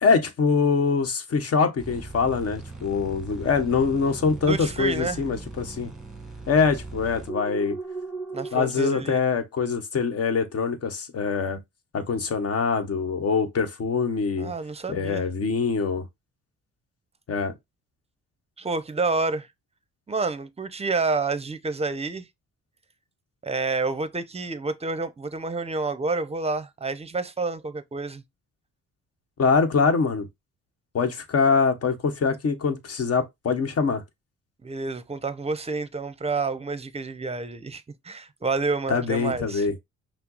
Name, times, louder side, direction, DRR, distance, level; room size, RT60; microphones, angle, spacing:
voice 1, 0.0-5.9 6.5-7.8 8.5-11.6 11.9-14.5 14.9-16.1 17.3-17.5 29.4-30.3 30.9-34.0 38.9-39.8, left 5 dB, 55° left, 1.1 m, -24 dB
sound 1, 1.8-8.6, right 3 dB, ahead, 1.2 m, -38 dB
voice 2, 4.5-5.2 8.3-9.2 14.4-15.3 18.6-19.5 20.1-22.3 23.4-28.2 34.6-39.7, right 3 dB, 20° right, 0.6 m, -29 dB
5.5 x 2.0 x 3.9 m
cardioid pair, 90°, 30 cm